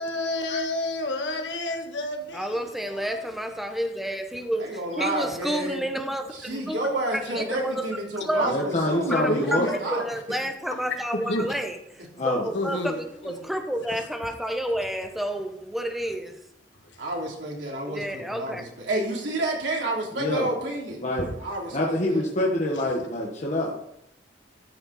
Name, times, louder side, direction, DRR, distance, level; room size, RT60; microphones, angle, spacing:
voice 1, 0.0-2.6 2.8-3.3 6.5-6.7 7.3-7.4 9.0-9.8 11.1-11.5 12.5-13.5 21.2-21.3, left 1 dB, 85° left, 3 dB, 1.7 m, -30 dB
voice 2, 2.3-6.3 6.7-6.8 7.1-7.8 8.2-8.5 9.1-11.8 12.2-16.4 17.8-18.6, equal, ahead, 5 dB, 1.0 m, -30 dB
voice 3, 4.6-5.9 6.3-9.5 9.8-10.0 17.0-21.0 21.4-22.2, right 2 dB, 90° right, -2 dB, 3.3 m, -30 dB
voice 4, 8.4-9.7 12.2-12.4 20.1-20.5 21.0-21.3 21.7-23.7, left 1 dB, 40° left, -2 dB, 1.5 m, -25 dB
14.0 x 6.7 x 4.2 m, 0.77 s
head